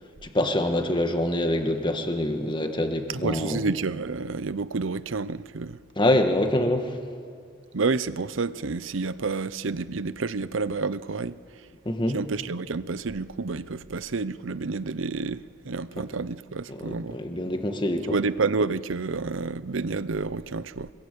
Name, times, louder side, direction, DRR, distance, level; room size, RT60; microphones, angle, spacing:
voice 1, 0.2-3.6 6.0-7.0 11.9-12.2 16.7-18.1, left 1 dB, 25° left, 1.8 m, -25 dB
voice 2, 3.1-5.8 7.7-11.7 12.1-17.2 18.1-20.9, right 4 dB, 75° right, 0.7 m, -29 dB
24.5 x 22.0 x 8.6 m
head